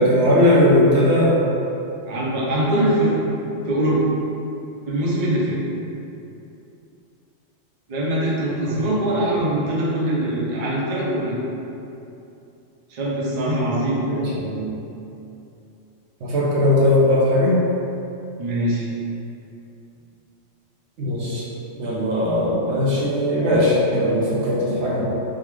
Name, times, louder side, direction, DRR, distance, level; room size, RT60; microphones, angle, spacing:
voice 1, 0.0-1.4 8.7-8.9 14.1-14.7 16.2-17.6 21.0-21.4 21.8-25.1, left 1 dB, 65° right, -6 dB, 0.9 m, -19 dB
voice 2, 2.1-3.2 3.7-4.1 4.9-5.6 7.9-11.4 12.9-14.1 18.4-18.8, right 1 dB, 45° right, -6 dB, 0.6 m, -22 dB
3.7 x 2.3 x 3.1 m, 2.8 s
omnidirectional pair, 1.3 m